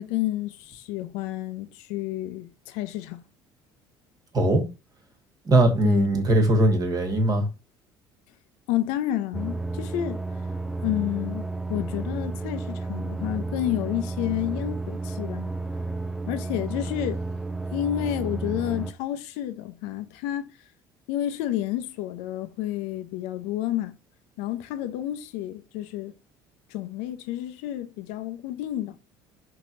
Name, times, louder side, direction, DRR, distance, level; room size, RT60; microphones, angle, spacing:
voice 1, 0.0-3.2 5.8-6.1 8.7-10.2 10.8-15.5 16.3-17.2 17.7-20.5 21.1-24.0 24.4-26.1 26.7-29.0, left 13 dB, 70° left, 0.6 m, -30 dB
voice 2, 5.4-7.5, right 1 dB, 30° right, 1.4 m, -20 dB
sound 1, 9.3-18.9, right 3 dB, 5° right, 0.4 m, -32 dB
4.6 x 3.0 x 2.5 m
hypercardioid pair, 70°, 12 cm